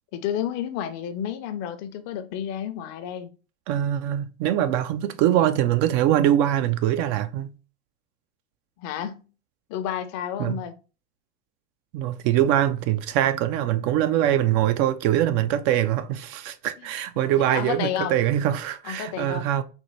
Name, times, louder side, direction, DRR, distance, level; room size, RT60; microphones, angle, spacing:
voice 1, 0.1-3.3 8.8-9.2 9.7-10.7 17.2-18.2 18.8-19.5, left 10 dB, 50° left, 0.6 m, -31 dB
voice 2, 3.7-7.5 10.4-10.6 11.9-19.6, right 11 dB, 50° right, 0.4 m, -23 dB
4.2 x 2.1 x 3.1 m
hypercardioid pair, 105°, 36 cm